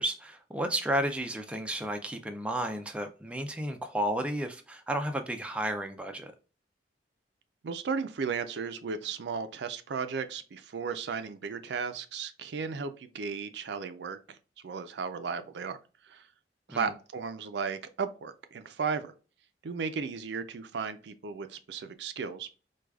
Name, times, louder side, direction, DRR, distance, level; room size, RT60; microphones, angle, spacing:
voice 1, 0.0-6.3 16.7-16.9, right 1 dB, 5° right, 0.3 m, -32 dB
voice 2, 7.6-14.4 14.6-15.8 16.1-16.2 16.7-19.1 19.6-22.6, right 5 dB, 70° right, 0.4 m, -35 dB
4.7 x 2.3 x 2.2 m
head